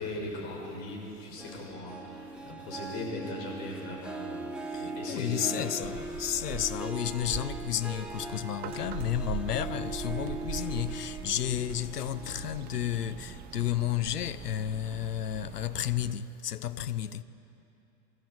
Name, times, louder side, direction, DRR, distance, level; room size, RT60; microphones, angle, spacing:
voice 1, 0.0-4.4 4.8-6.0, left 2 dB, 45° left, 6.8 m, -39 dB
Harp, 1.4-14.1 14.5-14.9 15.4-15.5, right 2 dB, ahead, 1.3 m, -41 dB
voice 2, 4.7-17.2, left 11 dB, 70° left, 0.8 m, -32 dB
sound 1, 5.8-16.1, right 9 dB, 20° right, 0.5 m, -42 dB
24.0 x 13.5 x 8.6 m
figure-of-eight pair, 95°, 48 cm